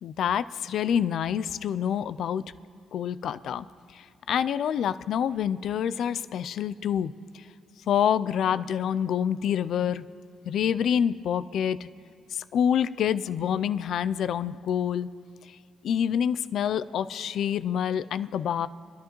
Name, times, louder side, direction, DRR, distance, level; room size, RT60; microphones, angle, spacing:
voice 1, 0.0-2.4 2.9-3.7 3.9-7.5 7.9-10.1 10.4-11.9 12.3-15.1 15.5-15.6 15.8-18.7, left 9 dB, 70° left, 15 dB, 0.3 m, -27 dB
28.5 x 11.0 x 3.1 m, 2.2 s
cardioid pair, 80°, 0 cm